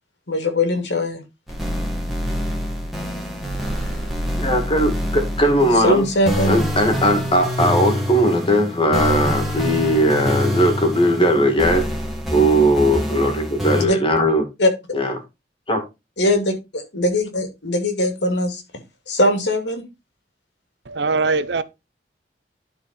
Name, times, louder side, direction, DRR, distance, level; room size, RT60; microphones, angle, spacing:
voice 1, 0.3-1.2 5.8-6.5 13.7-14.0 14.6-14.7 16.2-18.6 19.1-19.8, left 1 dB, 85° left, 2.4 m, -20 dB
sound 1, 1.5-13.9, equal, ahead, 2.2 m, -25 dB
voice 2, 4.4-6.1 6.5-11.9 12.3-14.5 14.9-15.2 15.7-15.8, equal, 30° left, 2.3 m, -18 dB
voice 3, 20.9-21.6, right 4 dB, 75° right, 0.8 m, -21 dB
11.5 x 4.6 x 4.2 m
head